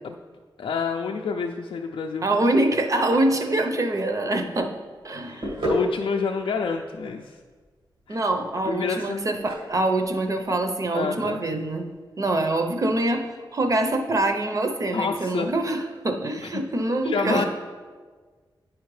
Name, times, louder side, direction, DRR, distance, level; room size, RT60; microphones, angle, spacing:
voice 1, 0.6-2.3 5.3-7.4 8.1-8.3 8.6-9.2 10.9-11.4 14.9-15.5 16.4-16.6 17.0-17.5, left 5 dB, 90° left, 1 dB, 0.4 m, -28 dB
voice 2, 2.2-4.7 5.0-5.5 8.1-11.9 12.2-17.5, right 2 dB, 40° right, 5 dB, 0.7 m, -24 dB
sound 1, 4.1-12.0, equal, 80° right, 2.0 m, -35 dB
10.0 x 4.9 x 3.2 m, 1.5 s
wide cardioid pair, 100°, 8 cm